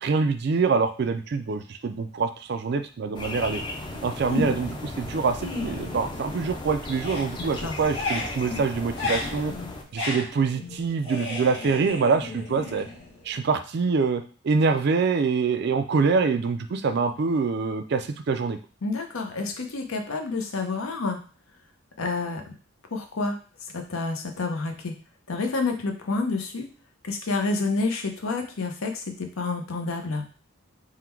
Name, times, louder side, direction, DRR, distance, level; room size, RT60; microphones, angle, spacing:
voice 1, 0.0-3.6 4.0-9.5 9.9-12.9 13.2-18.6, right 4 dB, 50° right, 8 dB, 0.4 m, -25 dB
sound 1, 3.1-9.8, left 2 dB, 20° left, 0.4 m, -36 dB
sound 2, 4.3-4.8 5.2-6.6 6.9-13.4, left 2 dB, 60° left, 1.6 m, -34 dB
voice 2, 7.4-7.7 18.8-21.2 22.0-22.5 22.9-23.4 23.7-24.9 25.3-26.6 27.0-30.2, left 3 dB, 80° left, 4 dB, 0.7 m, -29 dB
3.7 x 2.2 x 4.4 m, 0.38 s
head